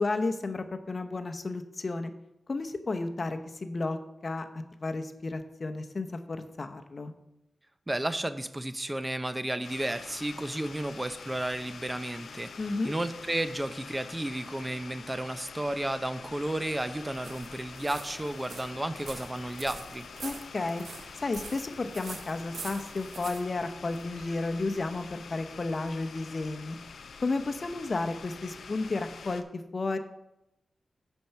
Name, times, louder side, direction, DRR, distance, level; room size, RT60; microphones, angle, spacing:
voice 1, 0.0-2.1 2.5-4.0 4.2-7.1 12.6-12.9 20.2-20.8 21.1-26.8 27.2-30.0, left 3 dB, 50° left, 8 dB, 0.7 m, -32 dB
voice 2, 7.9-12.5 12.8-20.1, right 1 dB, 20° right, 11 dB, 0.6 m, -33 dB
sound 1, 9.6-29.4, left 5 dB, 85° left, 0.5 m, -46 dB
sound 2, 16.2-24.3, right 4 dB, 80° right, 0.9 m, -46 dB
8.6 x 4.6 x 5.7 m, 0.86 s
cardioid pair, 50°, 0 cm